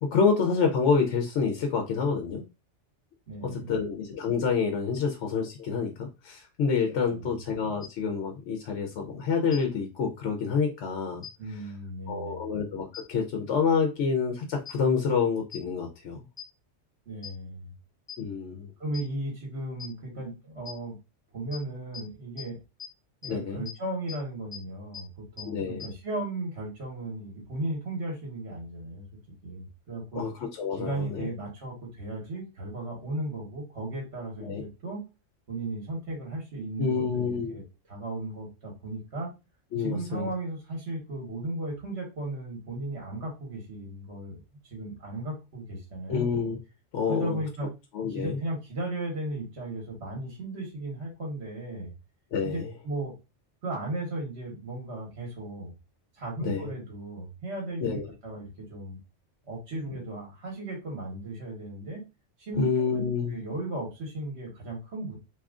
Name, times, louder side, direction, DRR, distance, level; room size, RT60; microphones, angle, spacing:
voice 1, 0.0-2.4 3.4-11.3 11.5-11.6 12.1-16.2 18.2-18.7 23.3-23.6 25.4-25.8 30.1-31.3 34.4-34.6 36.8-37.6 39.7-40.3 46.1-46.6 46.9-47.4 47.9-48.4 52.3-52.7 56.4-56.6 57.8-58.0 62.6-63.4, left 5 dB, 75° left, 0.9 m, -28 dB
voice 2, 3.3-3.8 7.0-7.3 11.4-12.5 17.1-17.7 18.8-21.0 21.3-22.6 23.2-29.0 29.4-30.2 30.7-35.0 35.5-37.6 37.9-39.3 39.8-46.3 47.1-47.7 48.1-51.9 52.4-53.1 53.6-55.7 56.1-59.0 59.5-62.0 62.4-62.7 63.3-65.2, right 2 dB, 65° right, 1.5 m, -36 dB
sound 1, 7.8-7.9 9.5-9.6 11.2-11.3 12.9-13.0 14.6-14.7 15.5-15.6 16.4-16.5 17.2-17.3 18.1-18.2 18.9-19.0 19.8-19.9 20.6-20.7 21.5-21.6 21.9-22.0 22.4-22.5 22.8-22.9 23.2-23.3 23.6-23.7 24.1-24.2 24.5-24.6 24.9-25.0 25.4-25.5 25.8-25.9, left 9 dB, 25° left, 1.1 m, -39 dB
3.0 x 2.4 x 3.5 m
omnidirectional pair, 1.2 m